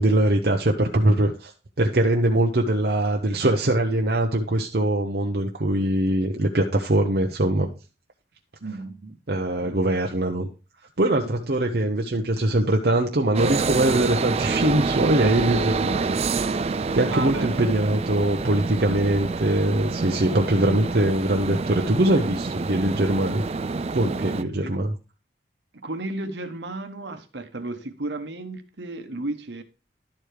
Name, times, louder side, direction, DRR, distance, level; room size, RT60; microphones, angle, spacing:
voice 1, 0.0-1.5 1.8-7.7 9.3-10.5 11.0-16.2 16.6-23.4 23.9-24.9, right 1 dB, 55° right, 0.8 m, -22 dB
voice 2, 8.6-9.2 9.6-9.8 11.2-11.3 17.1-17.5 24.6-24.7 25.8-29.6, right 2 dB, 70° right, 1.2 m, -33 dB
sound 1, 13.3-24.4, right 4 dB, 35° right, 0.4 m, -27 dB
11.5 x 4.7 x 5.0 m
head